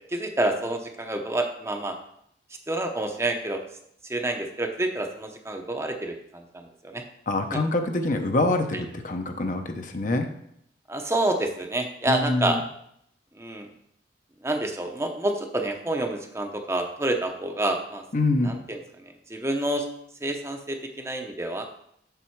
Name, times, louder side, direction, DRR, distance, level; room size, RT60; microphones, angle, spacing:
voice 1, 0.1-2.0 2.7-3.6 4.1-7.0 7.5-7.6 10.9-12.6 13.4-13.7 14.4-18.0 18.4-18.8 19.3-19.9 20.2-21.7, right 1 dB, 15° right, 4 dB, 0.8 m, -28 dB
voice 2, 7.3-10.3 12.1-12.6 18.1-18.6, left 2 dB, 45° left, 6 dB, 0.8 m, -25 dB
7.1 x 6.7 x 4.6 m, 0.72 s
head